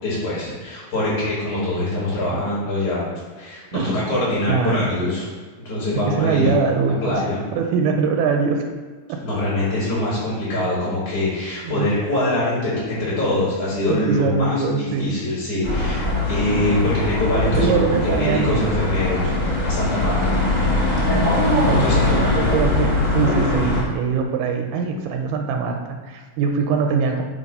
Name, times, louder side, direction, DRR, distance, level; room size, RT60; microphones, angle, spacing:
voice 1, 0.0-3.1 3.4-5.2 5.7-6.6 7.0-7.4 9.2-17.8 18.1-19.3 19.6-20.3 21.6-22.4, left 1 dB, 55° left, -9 dB, 3.5 m, -24 dB
voice 2, 4.5-4.9 6.1-7.2 7.6-8.6 9.1-9.2 10.8-10.9 11.6-11.9 13.9-15.2 17.5-18.6 21.6-27.2, right 5 dB, 80° right, 4 dB, 2.4 m, -22 dB
sound 1, 15.6-23.8, left 2 dB, 30° left, 0.7 m, -21 dB
8.4 x 3.0 x 5.3 m, 1.5 s
omnidirectional pair, 4.3 m